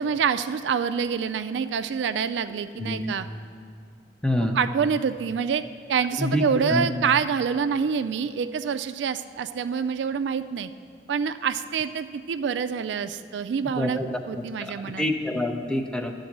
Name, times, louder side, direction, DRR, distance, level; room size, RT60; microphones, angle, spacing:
voice 1, 0.0-3.3 4.4-5.6 5.9-10.7 11.1-14.0 14.3-15.1, right 6 dB, 85° right, 11 dB, 0.3 m, -26 dB
voice 2, 2.8-3.1 4.2-4.6 6.2-6.9 13.8-14.1 14.4-14.5 15.0-16.1, left 1 dB, 5° left, 5 dB, 0.5 m, -26 dB
11.5 x 3.9 x 7.3 m, 2.2 s
head